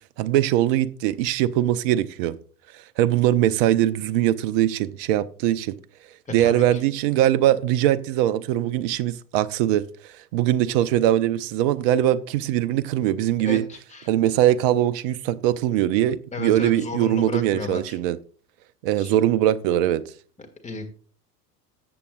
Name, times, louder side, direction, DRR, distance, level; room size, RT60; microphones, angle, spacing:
voice 1, 0.2-2.4 3.0-5.7 6.3-13.6 14.1-18.2 18.8-20.0, right 12 dB, 35° right, 0.4 m, -21 dB
voice 2, 6.3-6.8 13.4-14.1 16.3-18.0 19.0-19.2 20.4-20.9, left 3 dB, 15° left, 1.7 m, -34 dB
13.5 x 7.8 x 2.3 m
figure-of-eight pair, 80°, 49 cm